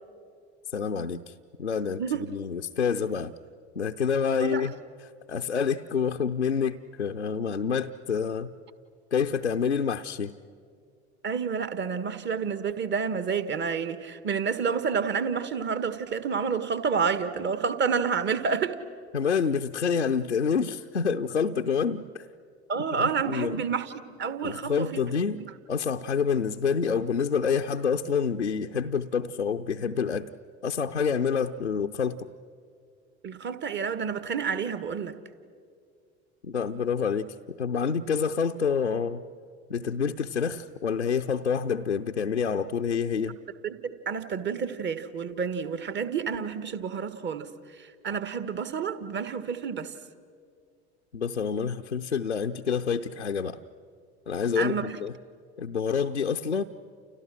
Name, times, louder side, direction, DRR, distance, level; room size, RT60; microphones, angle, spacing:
voice 1, 0.7-1.3 1.6-3.3 3.8-4.7 5.0-8.5 9.1-10.3 19.1-22.3 23.0-23.6 24.4-25.4 25.7-30.3 30.6-32.3 36.4-39.2 39.7-43.4 51.1-53.6 54.3-55.2 55.6-56.6, left 6 dB, 90° left, 0.6 m, -27 dB
voice 2, 11.2-18.8 22.7-23.9 24.2-24.9 33.2-35.1 43.6-47.5 47.8-49.9 54.5-54.9, right 6 dB, 30° right, 1.6 m, -29 dB
30.0 x 29.5 x 6.3 m
figure-of-eight pair, 70°, 34 cm